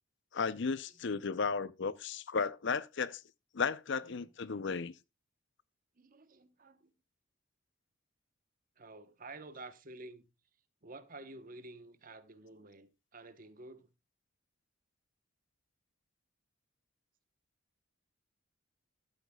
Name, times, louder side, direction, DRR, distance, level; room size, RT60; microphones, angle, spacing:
voice 1, 0.3-3.2 3.5-4.9, left 5 dB, 60° left, 0.6 m, -34 dB
voice 2, 6.0-6.9 8.8-10.3 10.8-13.9, right 2 dB, 40° right, 1.0 m, -51 dB
13.0 x 12.5 x 2.3 m
head